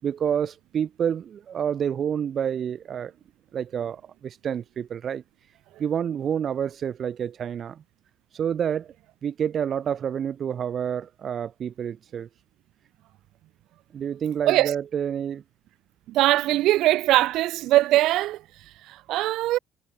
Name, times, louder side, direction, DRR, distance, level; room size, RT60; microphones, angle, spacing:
voice 1, 0.0-3.1 3.5-5.2 5.8-7.8 8.3-8.9 9.2-12.3 13.9-15.4, right 8 dB, 45° right, 4.6 m, -28 dB
voice 2, 14.4-14.7 16.1-19.6, right 16 dB, 75° right, 3.5 m, -22 dB
cardioid pair, 125°, 0 cm